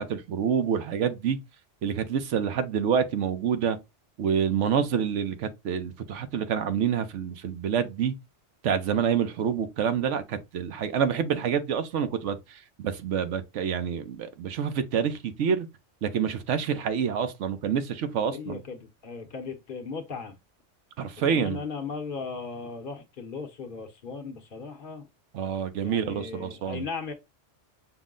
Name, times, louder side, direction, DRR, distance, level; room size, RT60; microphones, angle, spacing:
voice 1, 0.0-1.4 1.8-3.8 4.2-8.1 8.6-12.4 12.8-15.7 16.0-18.6 21.0-21.6 25.3-26.8, right 7 dB, 80° right, 1.0 m, -27 dB
voice 2, 18.3-20.4 21.3-25.1 25.8-27.1, left 5 dB, 50° left, 0.9 m, -37 dB
5.9 x 2.1 x 3.7 m
omnidirectional pair, 1.2 m